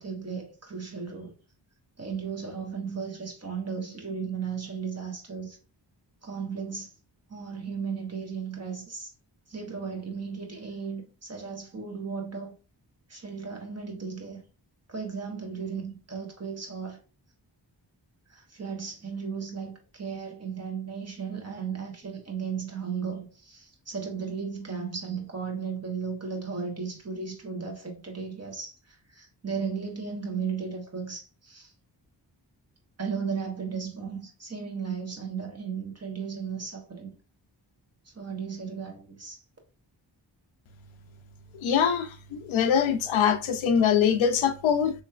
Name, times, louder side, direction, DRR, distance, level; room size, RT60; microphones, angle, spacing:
voice 1, 0.0-1.3 2.0-5.6 6.2-6.9 7.3-9.1 9.5-12.5 13.1-14.4 14.9-17.0 18.3-31.7 33.0-37.1 38.0-39.4, right 6 dB, 35° right, 1.2 m, -35 dB
voice 2, 41.6-42.1 42.5-44.9, left 8 dB, 85° left, 0.6 m, -23 dB
3.2 x 3.1 x 2.3 m
cardioid pair, 45°, 46 cm